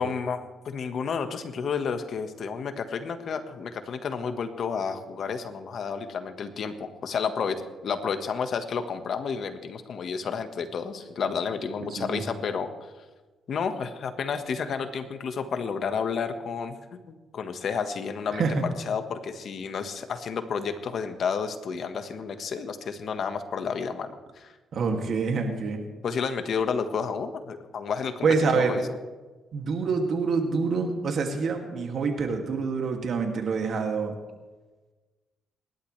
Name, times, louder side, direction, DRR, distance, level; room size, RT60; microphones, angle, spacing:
voice 1, 0.0-12.7 13.5-24.5 26.0-28.3 28.5-28.8, left 6 dB, 60° left, 8 dB, 1.5 m, -31 dB
voice 2, 11.8-12.2 18.3-18.6 24.7-25.8 28.2-28.8 29.5-34.2, right 4 dB, 60° right, 3 dB, 2.4 m, -26 dB
27.5 x 12.0 x 3.3 m, 1.3 s
cardioid pair, 90°, 0 cm